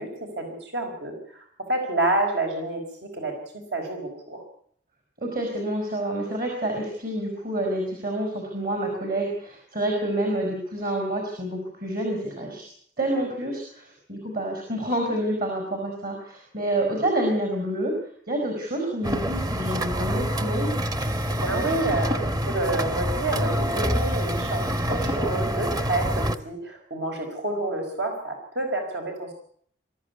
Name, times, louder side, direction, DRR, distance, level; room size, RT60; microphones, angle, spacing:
voice 1, 0.0-3.4 3.7-4.4 21.3-29.3, right 2 dB, 75° right, 3 dB, 5.0 m, -29 dB
voice 2, 5.2-12.7 13.0-17.9 18.3-20.7, right 1 dB, 55° right, 3 dB, 5.5 m, -28 dB
sound 1, 19.0-26.4, equal, 20° right, 1.0 m, -26 dB
23.5 x 14.0 x 9.6 m, 0.63 s
head